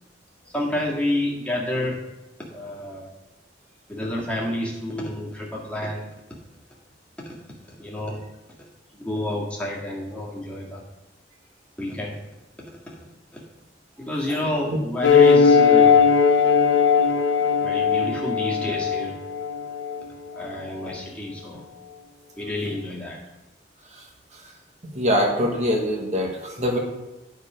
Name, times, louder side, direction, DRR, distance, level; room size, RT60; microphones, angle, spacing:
voice 1, 0.5-2.0 2.5-3.1 3.9-6.0 7.8-8.2 9.0-10.8 11.8-12.2 12.9-13.0 13.3-13.4 14.1-16.0 17.0-17.3 17.6-19.2 20.4-21.6 22.4-23.2, left 1 dB, 5° left, -5 dB, 1.8 m, -29 dB
sound 1, 15.0-20.0, left 6 dB, 90° left, 0.8 m, -18 dB
voice 2, 24.9-26.8, equal, 40° right, 0 dB, 1.3 m, -23 dB
9.8 x 4.4 x 5.0 m, 1.0 s
head